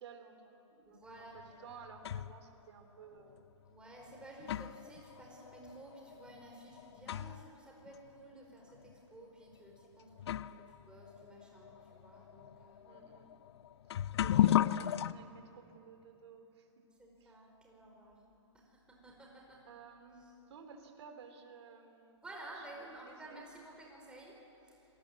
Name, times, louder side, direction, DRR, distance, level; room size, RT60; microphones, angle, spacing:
voice 1, 0.0-3.4 12.8-13.3 13.9-16.7 17.2-17.4 17.9-18.2 19.7-22.2 22.5-23.4, right 6 dB, 60° right, 6 dB, 3.3 m, -55 dB
voice 2, 0.8-1.4 3.7-10.5 10.8-13.0 17.0-18.2 18.5-19.6 22.2-24.3 24.7-24.8, right 1 dB, 5° right, -1 dB, 4.8 m, -53 dB
sound 1, 1.4-2.5 3.4-3.5 4.1-7.6 7.9-8.0 8.8-8.9 9.7-9.8 10.2-15.1, left 11 dB, 55° left, 0.6 m, -35 dB
27.5 x 19.0 x 8.3 m, 3.0 s
hypercardioid pair, 155°, 16 cm